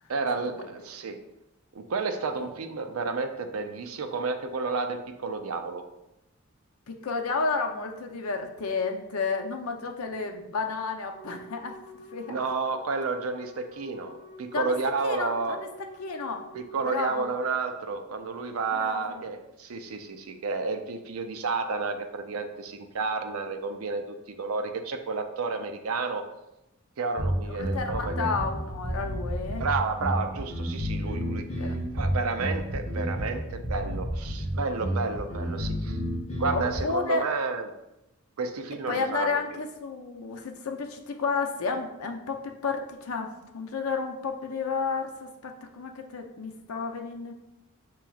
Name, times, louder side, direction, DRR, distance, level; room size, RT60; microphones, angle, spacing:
voice 1, 0.1-1.2 1.7-5.8 12.3-15.6 16.5-26.2 27.0-28.3 29.6-36.0 36.4-37.7 38.4-39.4, right 4 dB, 80° right, 7 dB, 0.5 m, -31 dB
voice 2, 6.9-11.8 12.1-12.3 14.5-14.7 15.0-15.7 16.0-16.5 16.8-17.3 18.7-19.2 27.5-29.7 31.6-31.8 36.5-37.3 38.9-47.3, left 4 dB, 85° left, 4 dB, 0.6 m, -31 dB
Wind instrument woodwind instrument, 11.1-17.2, left 2 dB, 35° right, 0.8 m, -48 dB
sound 1, 27.2-36.8, equal, 30° left, 1.2 m, -30 dB
6.7 x 3.0 x 2.3 m, 0.90 s
head